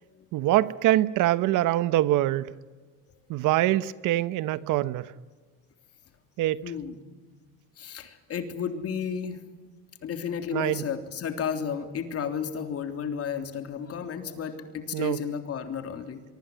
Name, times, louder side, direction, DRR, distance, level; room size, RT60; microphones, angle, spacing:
voice 1, 0.3-2.5 3.3-5.1 6.4-6.6 10.5-10.8 14.9-15.2, right 15 dB, 60° right, 1.0 m, -24 dB
voice 2, 6.6-7.0 7.8-9.4 10.0-16.2, left 7 dB, 40° left, 3.4 m, -33 dB
24.0 x 23.5 x 9.4 m
cardioid pair, 120°, 35 cm